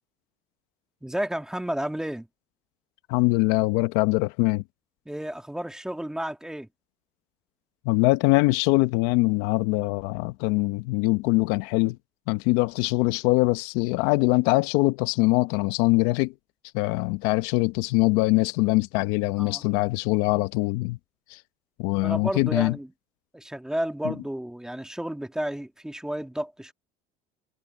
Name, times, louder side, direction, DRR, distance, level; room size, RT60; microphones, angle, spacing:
voice 1, 1.0-2.3 5.1-6.7 19.4-19.6 21.9-22.9 23.3-26.7, right 1 dB, 5° right, 1.9 m, -32 dB
voice 2, 3.1-4.6 7.8-12.0 12.3-16.3 16.7-21.0 21.3-21.4 21.8-22.8 24.0-24.1, left 22 dB, 80° left, 0.9 m, -23 dB
supercardioid pair, 110°, 16 cm